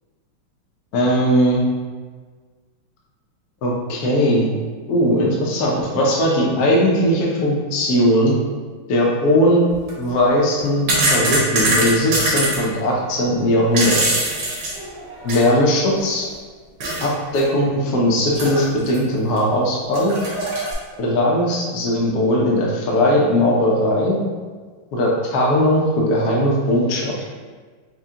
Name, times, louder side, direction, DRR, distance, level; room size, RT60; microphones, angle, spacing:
voice 1, 0.9-1.6 3.6-4.5 4.9-8.3 8.9-9.7 10.0-14.2 15.2-16.3 17.0-20.1 21.0-24.2 24.9-27.2, equal, 65° left, -3 dB, 0.9 m, -18 dB
sound 1, 9.7-9.9 10.5-12.6 13.5-15.6 15.9-16.0 16.8-17.1 17.3-17.4 18.3-19.0 19.4-19.5 19.9-20.7, right 1 dB, 65° right, 1.4 m, -22 dB
6.0 x 2.2 x 2.8 m, 1.5 s
omnidirectional pair, 2.3 m